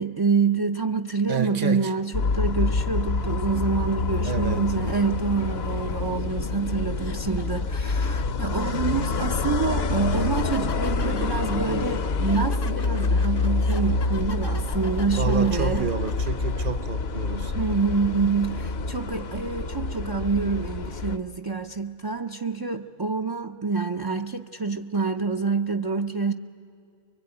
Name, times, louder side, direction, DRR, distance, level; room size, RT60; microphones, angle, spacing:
voice 1, 0.0-15.9 17.5-26.3, right 4 dB, 35° right, 0.4 m, -27 dB
voice 2, 1.3-1.9 4.2-4.7 15.1-17.6, right 8 dB, 50° right, 0.9 m, -30 dB
sound 1, 2.1-21.2, left 3 dB, 60° left, 1.1 m, -27 dB
sound 2, 6.3-6.5 7.0-16.3, left 4 dB, 25° left, 0.6 m, -43 dB
23.5 x 22.0 x 9.6 m
omnidirectional pair, 1.2 m